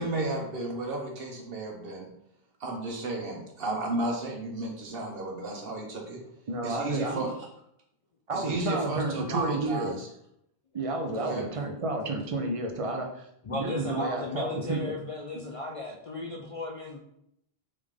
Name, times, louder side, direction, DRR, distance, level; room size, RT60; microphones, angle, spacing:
voice 1, 0.0-2.1 2.6-6.2 6.6-7.3 8.3-10.1 11.1-11.4, right 2 dB, 70° right, 1 dB, 1.1 m, -33 dB
voice 2, 6.5-7.3 8.3-10.0 10.7-14.8, right 2 dB, 40° right, 3 dB, 0.6 m, -31 dB
voice 3, 13.4-17.0, left 2 dB, 50° left, -1 dB, 0.4 m, -35 dB
3.6 x 3.2 x 3.6 m, 0.75 s
omnidirectional pair, 1.0 m